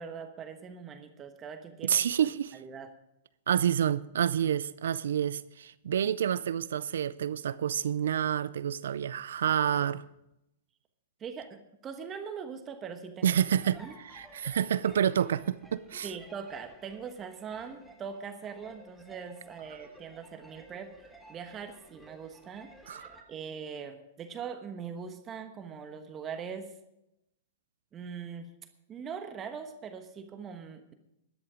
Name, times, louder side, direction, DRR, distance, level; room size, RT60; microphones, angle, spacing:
voice 1, 0.0-2.9 11.2-13.4 13.8-14.0 16.0-22.7 23.3-26.7 27.9-28.5 28.9-30.9, right 6 dB, 25° right, 1.2 m, -41 dB
voice 2, 1.8-2.6 3.5-10.0 13.2-16.1 22.9-23.2, right 9 dB, 75° right, 0.4 m, -28 dB
sound 1, 13.6-23.2, equal, 5° left, 1.8 m, -55 dB
13.5 x 10.5 x 5.0 m
hypercardioid pair, 120°, 0 cm